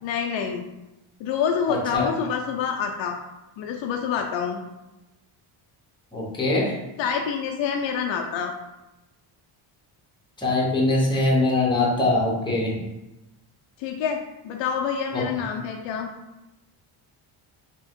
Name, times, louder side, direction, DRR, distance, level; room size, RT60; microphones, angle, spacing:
voice 1, 0.0-0.7 1.2-3.2 3.6-4.6 7.0-8.5 13.8-16.1, left 7 dB, 65° left, 2 dB, 0.5 m, -27 dB
voice 2, 1.7-2.1 6.1-6.7 10.4-12.8 15.1-15.2, left 2 dB, 10° left, -4 dB, 0.9 m, -22 dB
3.5 x 3.0 x 3.6 m, 0.96 s
cardioid pair, 145°, 48 cm